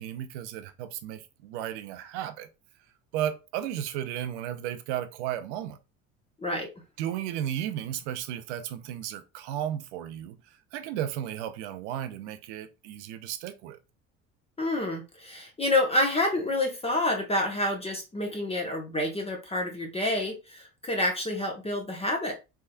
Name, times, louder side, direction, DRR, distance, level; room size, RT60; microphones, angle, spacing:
voice 1, 0.0-2.5 3.1-5.8 7.0-10.4 10.7-13.8, right 11 dB, 75° right, 0.6 m, -34 dB
voice 2, 14.6-22.3, left 1 dB, 15° left, 0.9 m, -28 dB
3.4 x 3.0 x 2.2 m
hypercardioid pair, 70°, 35 cm